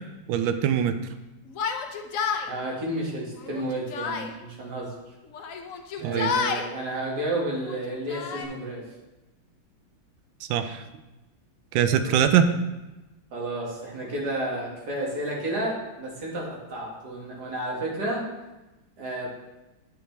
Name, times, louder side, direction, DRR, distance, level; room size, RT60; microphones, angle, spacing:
voice 1, 0.3-0.9 6.0-6.3 10.5-10.8 11.7-12.5, right 9 dB, 80° right, 9 dB, 1.3 m, -22 dB
Yell, 1.5-2.5 3.4-4.3 5.3-6.7 7.5-8.5, left 6 dB, 70° left, 0.7 m, -30 dB
voice 2, 2.5-4.9 6.0-8.8 11.9-12.3 13.3-18.2 19.0-19.3, right 1 dB, 55° right, -4 dB, 2.4 m, -31 dB
9.1 x 5.8 x 3.3 m, 1.0 s
omnidirectional pair, 2.1 m